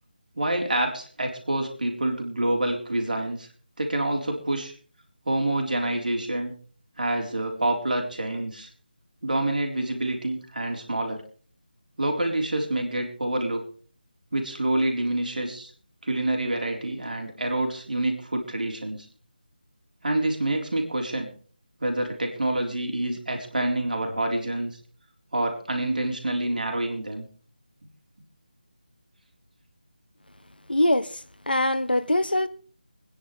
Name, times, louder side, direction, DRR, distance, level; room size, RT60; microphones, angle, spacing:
voice 1, 0.4-3.5 3.8-4.7 5.3-6.5 7.0-8.7 9.2-11.2 12.0-13.6 14.3-15.7 16.0-19.1 20.0-21.3 21.8-24.7 25.3-27.3, right 1 dB, 65° right, 3.7 m, -27 dB
voice 2, 30.7-31.2 31.5-32.5, left 1 dB, 85° left, 1.1 m, -22 dB
26.0 x 10.0 x 3.3 m
figure-of-eight pair, 160°, 5 cm